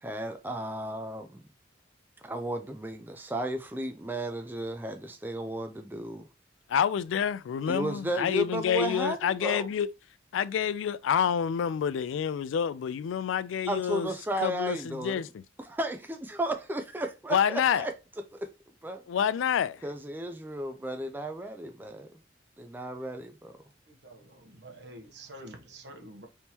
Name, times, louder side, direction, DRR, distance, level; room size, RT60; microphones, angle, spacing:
voice 1, 0.0-1.4 2.2-6.3 7.7-9.7 13.7-15.2 15.6-17.9 18.3-18.5 18.8-19.0 19.8-22.1 22.6-23.6, right 1 dB, 10° right, 0.3 m, -34 dB
voice 2, 6.7-9.9 10.3-14.1 14.4-15.4 17.3-17.9 19.1-19.8, left 8 dB, 85° left, 0.3 m, -28 dB
voice 3, 23.9-26.3, right 1 dB, 60° right, 1.0 m, -47 dB
3.6 x 2.9 x 4.2 m
head